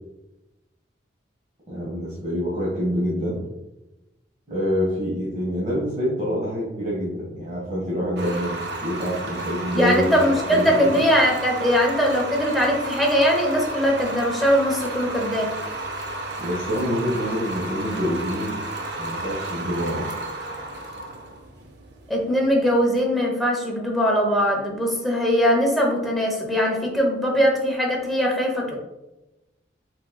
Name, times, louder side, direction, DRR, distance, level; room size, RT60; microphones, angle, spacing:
voice 1, 1.7-3.4 4.5-10.0 10.5-11.0 16.4-18.6 19.0-20.1, equal, 35° right, -8 dB, 1.3 m, -26 dB
sound 1, 8.2-23.1, right 2 dB, 60° right, 0.6 m, -32 dB
voice 2, 9.7-15.5 22.1-28.7, equal, ahead, -2 dB, 0.8 m, -21 dB
5.1 x 4.2 x 2.3 m, 1.0 s
head